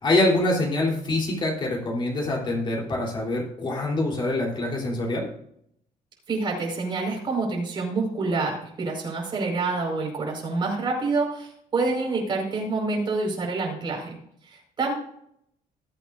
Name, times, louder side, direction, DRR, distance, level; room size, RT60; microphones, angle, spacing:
voice 1, 0.0-5.3, left 2 dB, 30° left, -2 dB, 3.7 m, -25 dB
voice 2, 6.3-14.1 14.4-14.9, right 3 dB, 30° right, -1 dB, 5.1 m, -27 dB
20.0 x 8.8 x 2.6 m, 0.69 s
cardioid pair, 170°, 15 cm